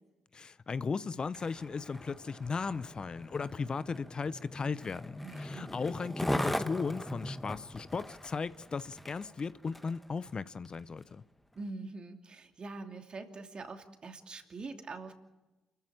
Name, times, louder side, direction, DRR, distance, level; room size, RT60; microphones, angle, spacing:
voice 1, 0.3-11.2, left 5 dB, 40° left, 0.8 m, -36 dB
Skateboard, 1.2-10.0 10.7-10.8, left 1 dB, 5° left, 1.4 m, -40 dB
voice 2, 5.2-5.7 11.5-15.1, right 3 dB, 45° right, 2.9 m, -44 dB
28.5 x 14.0 x 8.6 m
hypercardioid pair, 45°, 2 cm